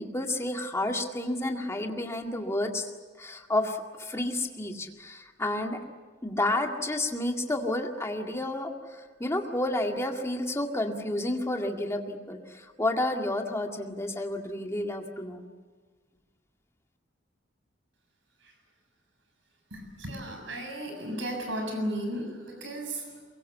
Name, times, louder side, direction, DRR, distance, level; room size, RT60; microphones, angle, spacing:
voice 1, 0.0-2.9 3.2-5.8 6.2-15.4, left 1 dB, 15° left, 2 dB, 2.0 m, -30 dB
voice 2, 19.7-23.2, right 1 dB, 75° right, 3 dB, 6.8 m, -35 dB
23.5 x 22.5 x 8.4 m, 1.4 s
head